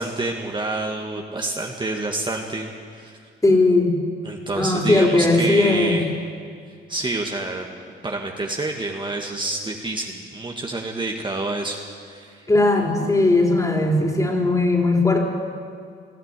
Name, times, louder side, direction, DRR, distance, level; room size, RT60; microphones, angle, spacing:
voice 1, 0.0-2.7 2.9-3.2 4.2-6.1 6.9-7.7 8.0-12.4, right 2 dB, 25° right, 1 dB, 1.9 m, -28 dB
voice 2, 3.4-4.0 4.6-6.1 12.5-15.2, left 2 dB, 15° left, 1 dB, 3.9 m, -18 dB
20.5 x 13.5 x 9.8 m, 2.2 s
cardioid pair, 90°, 20 cm